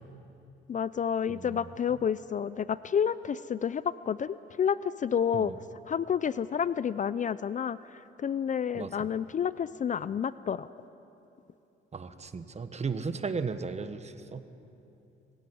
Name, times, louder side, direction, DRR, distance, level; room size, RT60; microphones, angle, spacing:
voice 1, 0.7-5.5 5.9-10.7, left 8 dB, 40° left, 16 dB, 0.5 m, -30 dB
voice 2, 1.3-1.7 5.3-5.5 8.7-9.1 11.9-14.4, right 5 dB, 35° right, 10 dB, 1.2 m, -36 dB
20.5 x 16.0 x 9.4 m, 2.9 s
cardioid pair, 90°, 20 cm